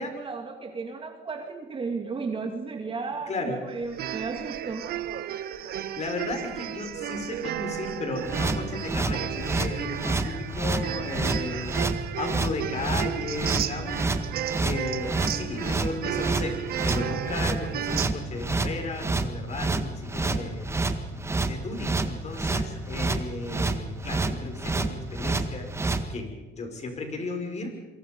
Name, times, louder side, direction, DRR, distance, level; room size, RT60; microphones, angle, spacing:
voice 1, 0.0-4.9, right 4 dB, 30° right, 4 dB, 2.3 m, -34 dB
voice 2, 3.3-3.6 6.0-11.8 12.2-14.1 14.6-20.7 21.1-25.7 26.1-26.3 26.6-27.8, left 2 dB, 40° left, 4 dB, 5.9 m, -34 dB
sound 1, 3.9-18.1, right 11 dB, 65° right, 1.4 m, -34 dB
sound 2, 8.2-26.0, right 3 dB, 15° right, 1.7 m, -28 dB
27.0 x 24.5 x 5.4 m, 1.2 s
cardioid pair, 110°, 17 cm